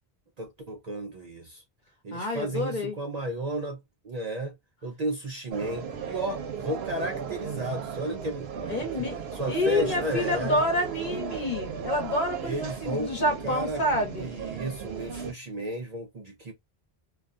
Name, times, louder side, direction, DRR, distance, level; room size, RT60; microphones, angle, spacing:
voice 1, 0.4-1.6 2.0-3.8 4.0-4.6 4.8-8.5 9.0-10.6 12.4-13.1 13.4-13.8 14.2-16.5, right 1 dB, 50° right, 0.5 m, -33 dB
voice 2, 2.1-3.0 8.7-9.2 9.5-14.3, left 1 dB, 50° left, 1.0 m, -28 dB
sound 1, 5.5-15.3, right 6 dB, 85° right, 0.8 m, -35 dB
2.4 x 2.2 x 2.4 m
omnidirectional pair, 1.0 m